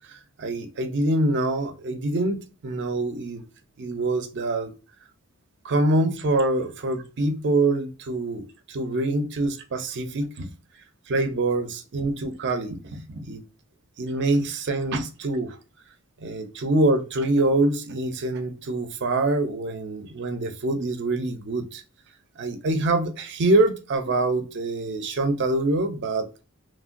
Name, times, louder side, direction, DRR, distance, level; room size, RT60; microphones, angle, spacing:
voice 1, 0.4-3.4 3.8-4.7 5.6-8.4 8.7-10.5 11.1-13.4 14.0-15.6 16.2-21.8 22.4-26.2, right 2 dB, 55° right, 8 dB, 0.5 m, -25 dB
3.1 x 2.2 x 2.4 m, 0.32 s
head